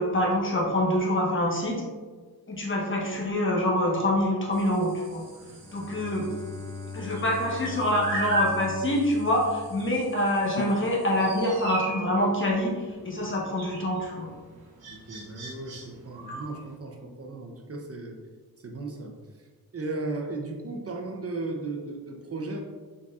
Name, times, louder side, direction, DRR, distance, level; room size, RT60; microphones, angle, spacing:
voice 1, 0.0-1.8 2.5-5.2 5.7-6.3 6.9-14.3, left 1 dB, 35° left, -2 dB, 1.1 m, -26 dB
sound 1, 4.5-16.7, right 1 dB, 80° right, 1.4 m, -38 dB
Bowed string instrument, 5.5-10.5, left 4 dB, 10° left, 0.5 m, -40 dB
sound 2, 10.6-14.9, left 4 dB, 60° left, 0.6 m, -44 dB
voice 2, 14.9-18.2 18.6-19.1 19.7-22.6, right 3 dB, 40° right, 2 dB, 0.7 m, -35 dB
4.9 x 4.2 x 2.4 m, 1.4 s
wide cardioid pair, 90°, 37 cm